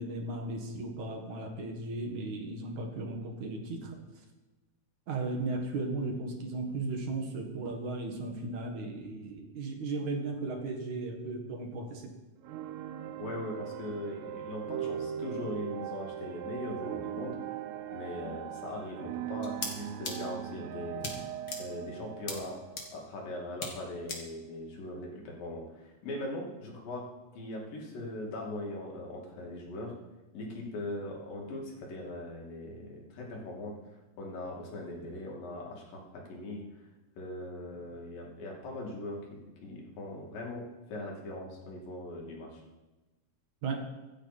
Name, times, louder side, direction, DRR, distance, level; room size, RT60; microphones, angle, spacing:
voice 1, 0.0-4.0 5.1-12.1 18.2-18.3 43.6-43.9, right 2 dB, 65° right, 3 dB, 3.1 m, -36 dB
sound 1, 12.4-23.7, right 10 dB, 80° right, 1.7 m, -40 dB
voice 2, 13.2-17.4 17.9-21.3 21.6-22.6 22.9-29.9 30.3-33.8 34.2-36.7 37.2-42.6, left 1 dB, 90° left, -1 dB, 4.3 m, -40 dB
sound 2, 19.4-19.7 20.0-20.1 21.0-21.1 21.5-21.6 22.3-22.4 22.8-22.9 23.6-23.7 24.1-24.2, left 3 dB, 35° left, 2.1 m, -35 dB
25.0 x 8.9 x 4.3 m, 1.1 s
omnidirectional pair, 3.8 m